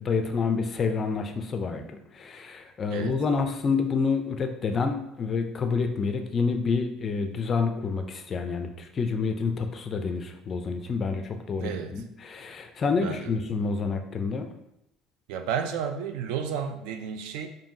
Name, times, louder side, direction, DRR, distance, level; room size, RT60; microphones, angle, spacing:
voice 1, 0.0-14.5, left 4 dB, 25° left, 6 dB, 0.3 m, -28 dB
voice 2, 11.6-11.9 13.0-13.4 15.3-17.5, right 7 dB, 75° right, 7 dB, 0.4 m, -32 dB
5.3 x 2.6 x 2.6 m, 0.82 s
cardioid pair, 165°, 0 cm